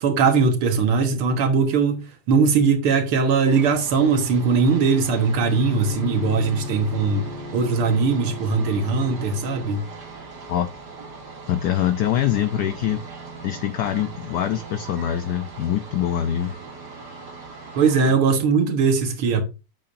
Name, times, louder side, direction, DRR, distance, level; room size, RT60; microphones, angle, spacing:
voice 1, 0.0-7.3 7.5-9.8 17.8-19.4, right 5 dB, 80° right, 2.2 m, -20 dB
sound 1, 3.5-18.1, right 4 dB, 50° right, 2.5 m, -40 dB
Bowed string instrument, 5.2-9.8, left 6 dB, 65° left, 0.6 m, -36 dB
voice 2, 11.5-13.0 13.4-16.6 18.1-18.2, left 11 dB, 90° left, 0.8 m, -24 dB
8.1 x 7.6 x 2.6 m
omnidirectional pair, 2.4 m